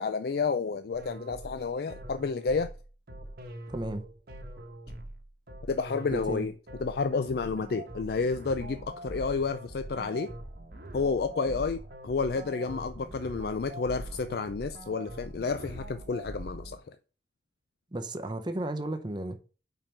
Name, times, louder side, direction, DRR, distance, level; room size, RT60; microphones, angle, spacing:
voice 1, 0.0-2.7 5.7-6.5 6.8-10.3 10.9-16.8, left 4 dB, 55° left, 0.4 m, -30 dB
sound 1, 0.9-16.8, right 1 dB, 50° right, 1.1 m, -43 dB
voice 2, 3.7-4.0 6.1-6.5 17.9-19.4, right 1 dB, 25° right, 0.6 m, -33 dB
5.3 x 4.4 x 5.6 m
head